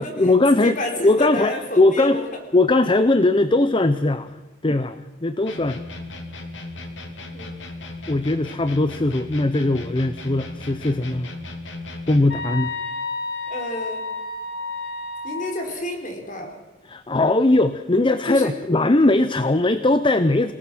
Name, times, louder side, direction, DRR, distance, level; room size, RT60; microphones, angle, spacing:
voice 1, 0.0-0.8 1.0-2.2 2.5-5.8 8.1-11.3 12.1-12.7 16.9-20.5, left 2 dB, 25° left, 12 dB, 0.6 m, -20 dB
voice 2, 0.6-2.4 7.3-7.6 13.5-14.0 15.2-16.6 18.3-18.5, left 1 dB, 45° left, 4 dB, 4.2 m, -30 dB
sound 1, 5.5-12.4, left 2 dB, 80° left, 2.8 m, -36 dB
sound 2, 12.3-15.6, left 3 dB, 60° left, 1.9 m, -30 dB
27.0 x 18.0 x 6.1 m, 1.2 s
head